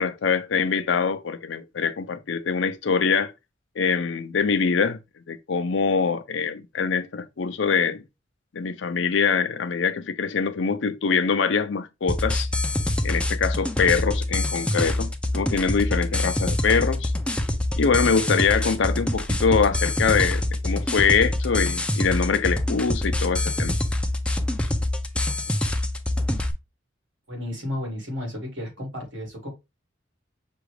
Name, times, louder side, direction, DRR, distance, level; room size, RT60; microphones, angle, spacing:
voice 1, 0.0-3.3 3.8-5.0 5.3-8.0 8.5-12.5 13.0-17.1 17.8-23.8, left 5 dB, 65° left, 0.5 m, -24 dB
sound 1, 12.1-26.5, left 1 dB, 5° left, 0.4 m, -25 dB
voice 2, 27.3-29.5, left 1 dB, 70° right, 2.3 m, -33 dB
5.9 x 2.4 x 3.1 m
head